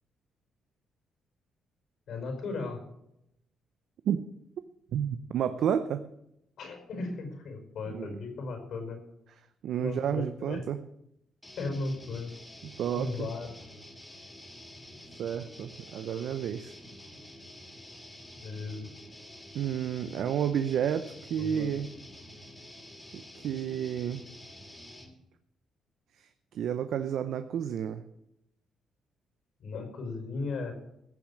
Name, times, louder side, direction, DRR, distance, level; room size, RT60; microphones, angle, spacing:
voice 1, 2.1-2.8 6.6-9.0 9.8-10.2 10.5-10.6 11.6-12.3 12.9-13.5 18.4-18.9 21.4-21.7 29.6-30.7, left 3 dB, 70° left, 5 dB, 5.0 m, -36 dB
voice 2, 4.9-6.0 7.9-8.1 9.6-10.8 12.6-13.3 15.2-16.8 19.5-21.9 23.1-24.2 26.2-26.3 26.5-28.0, right 9 dB, 70° right, 10 dB, 0.7 m, -31 dB
sound 1, 11.4-25.1, left 1 dB, 10° left, 2.8 m, -49 dB
15.0 x 7.2 x 8.4 m, 0.80 s
cardioid pair, 90°, 0 cm